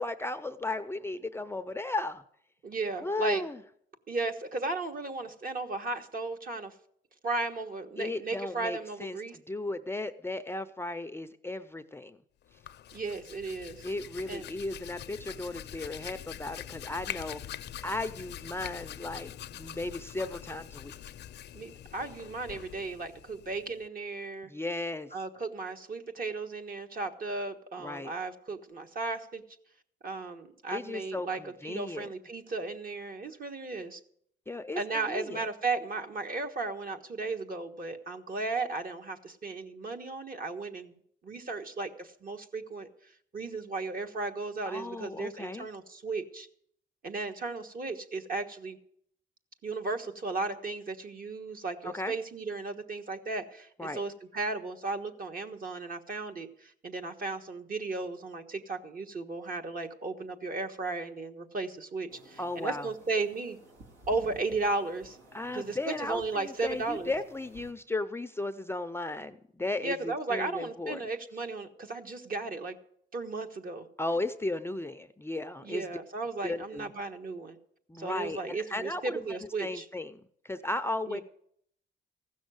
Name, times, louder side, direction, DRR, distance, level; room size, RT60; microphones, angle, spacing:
voice 1, 0.0-2.2 3.0-3.6 8.0-12.2 13.8-17.4 17.8-21.0 24.4-25.1 27.8-28.1 30.7-32.1 34.5-35.5 44.6-45.7 51.8-52.1 53.8-54.0 62.4-62.9 65.3-71.0 74.0-75.9 76.4-76.9 77.9-79.2 79.6-81.2, left 2 dB, 10° left, 10 dB, 0.5 m, -35 dB
voice 2, 2.6-3.4 4.1-6.7 7.2-9.4 12.9-13.8 14.3-14.5 21.5-24.5 25.1-29.4 30.0-34.0 34.7-42.9 43.3-46.5 47.0-48.8 49.6-63.6 64.1-65.2 65.5-67.1 69.8-72.8 73.1-73.9 75.6-77.6 78.0-79.8 81.1-81.2, right 3 dB, 45° right, 6 dB, 1.4 m, -35 dB
Hands, 12.5-23.9, left 11 dB, 60° left, 0.5 m, -44 dB
sound 1, 62.1-67.7, right 1 dB, 85° right, 2.3 m, -54 dB
15.0 x 6.3 x 7.9 m, 0.69 s
cardioid pair, 90°, 20 cm